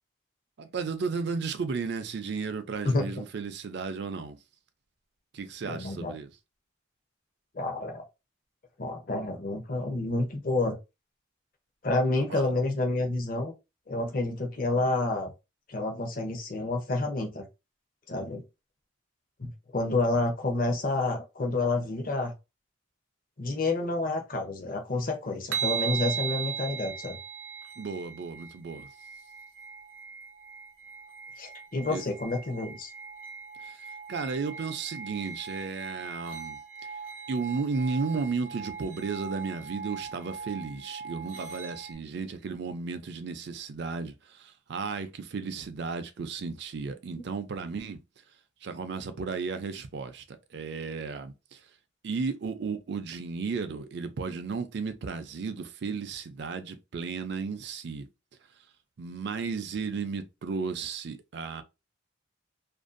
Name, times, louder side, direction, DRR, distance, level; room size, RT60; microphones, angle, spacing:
voice 1, 0.6-4.4 5.3-6.3 12.3-12.4 27.8-28.9 31.9-32.0 33.6-33.8 34.1-36.6 37.3-48.0 48.6-51.6 52.0-58.1 59.0-61.6, right 4 dB, 60° right, 0.4 m, -34 dB
voice 2, 5.6-6.1 7.5-8.0 8.8-10.8 11.8-13.5 13.9-15.3 15.7-17.4 18.1-18.4 19.4-22.3 23.4-27.2 31.4-32.9, left 2 dB, 45° left, 0.6 m, -29 dB
sound 1, 25.5-41.9, right 6 dB, 85° right, 0.7 m, -39 dB
2.5 x 2.2 x 2.5 m
head